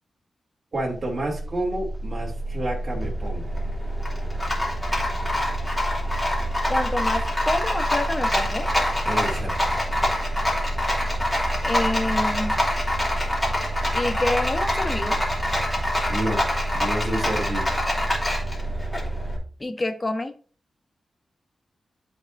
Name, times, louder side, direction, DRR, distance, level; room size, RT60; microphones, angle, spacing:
voice 1, 0.7-3.5 9.0-9.8 16.1-16.4 16.7-17.7, right 1 dB, 40° right, -2 dB, 2.8 m, -29 dB
Rattle, 0.8-19.4, equal, 10° left, 2.8 m, -25 dB
voice 2, 6.7-8.7 11.6-12.5 13.9-15.2 19.6-20.3, left 2 dB, 25° left, 7 dB, 1.1 m, -27 dB
12.5 x 4.9 x 2.6 m, 0.42 s
wide cardioid pair, 90°, 0 cm